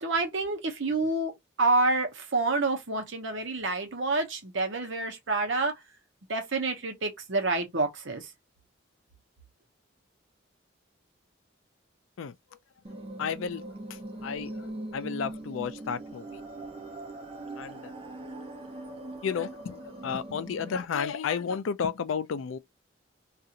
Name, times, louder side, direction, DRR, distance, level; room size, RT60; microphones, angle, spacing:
voice 1, 0.0-1.3 1.6-5.7 6.3-8.3, right 3 dB, 75° right, 0.9 m, -28 dB
sound 1, 12.8-20.8, right 1 dB, 30° right, 0.6 m, -41 dB
voice 2, 13.2-13.6 13.9-16.4 17.6-17.9 18.7-18.8 19.1-22.6, left 6 dB, 85° left, 0.4 m, -33 dB
2.8 x 2.5 x 2.5 m
head